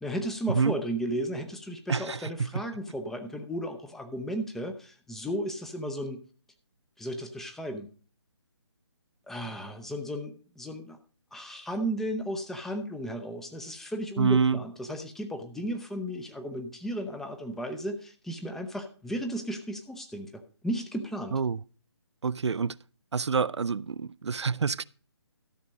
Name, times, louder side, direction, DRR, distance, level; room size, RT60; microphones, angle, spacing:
voice 1, 0.0-6.2 7.0-7.9 9.3-11.0 11.3-21.4, equal, ahead, 0.5 m, -34 dB
voice 2, 1.9-2.5 14.2-14.6 21.3-21.6 22.2-22.8 23.1-24.8, right 5 dB, 75° right, 0.4 m, -27 dB
13.0 x 6.1 x 5.1 m
figure-of-eight pair, 145°, 15 cm